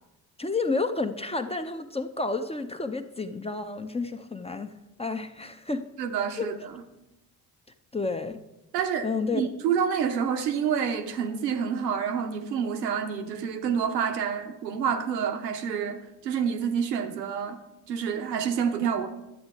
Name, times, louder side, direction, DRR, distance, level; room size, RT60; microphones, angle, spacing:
voice 1, 0.4-4.7 5.0-5.8 6.4-6.5 7.9-8.4 9.0-9.5, left 3 dB, 15° left, 0.6 m, -30 dB
voice 2, 6.0-6.6 8.7-9.1 9.3-17.6 17.9-19.1, right 7 dB, 80° right, 0.8 m, -28 dB
12.0 x 7.9 x 3.5 m
figure-of-eight pair, 40°, 49 cm